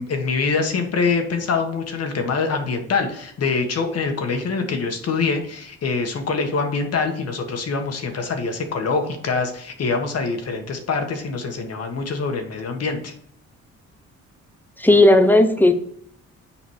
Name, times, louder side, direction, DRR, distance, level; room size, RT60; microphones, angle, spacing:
voice 1, 0.0-13.1, left 4 dB, 55° left, 5 dB, 1.5 m, -24 dB
voice 2, 14.8-15.7, left 1 dB, 5° left, 7 dB, 0.9 m, -14 dB
7.1 x 5.0 x 4.8 m, 0.66 s
cardioid pair, 90°, 30 cm